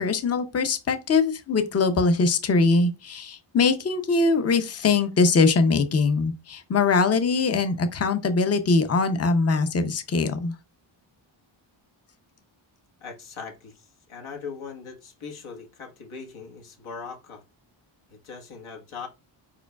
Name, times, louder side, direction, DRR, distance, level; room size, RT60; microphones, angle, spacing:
voice 1, 0.0-10.5, left 4 dB, 30° left, 0.6 m, -22 dB
voice 2, 13.0-17.4 18.1-19.1, left 5 dB, 75° left, 1.5 m, -40 dB
4.8 x 4.7 x 2.3 m
wide cardioid pair, 100°, 49 cm